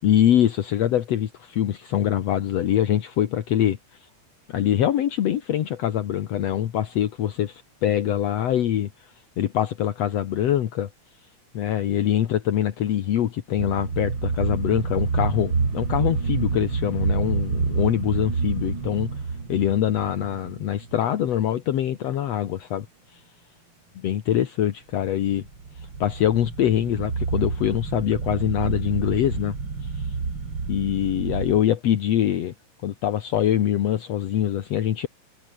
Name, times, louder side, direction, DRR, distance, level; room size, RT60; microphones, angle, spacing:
voice 1, 0.0-3.8 4.5-9.1 9.4-10.9 11.5-19.1 19.5-22.9 23.1-23.2 24.0-25.5 26.0-29.6 29.8-30.0 30.7-32.5 32.8-35.1, left 11 dB, 65° left, 2.3 m, -24 dB
sound 1, 13.6-21.3 25.1-31.6, right 4 dB, 40° right, 3.7 m, -28 dB
omnidirectional pair, 3.4 m